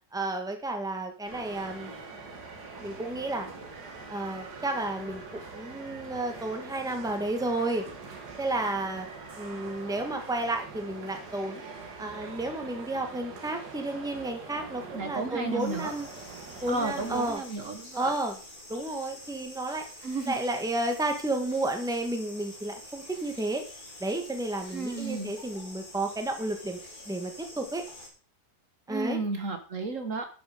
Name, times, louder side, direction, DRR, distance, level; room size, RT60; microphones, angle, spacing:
voice 1, 0.1-1.9 2.8-3.5 4.1-7.9 8.4-9.1 9.4-11.6 12.0-16.1 16.6-17.4 17.9-18.4 18.7-19.8 20.3-23.6 24.0-26.8 27.1-27.8 28.9-29.2, right 2 dB, ahead, 5 dB, 1.6 m, -32 dB
sound 1, 1.3-17.3, right 4 dB, 80° right, 2.4 m, -43 dB
voice 2, 14.9-15.9 16.7-18.1 20.0-20.3 24.7-25.3 28.9-30.3, right 3 dB, 55° right, 7 dB, 1.6 m, -33 dB
sound 2, 15.6-28.1, left 1 dB, 30° left, 3.1 m, -47 dB
11.5 x 7.0 x 5.1 m, 0.36 s
omnidirectional pair, 1.7 m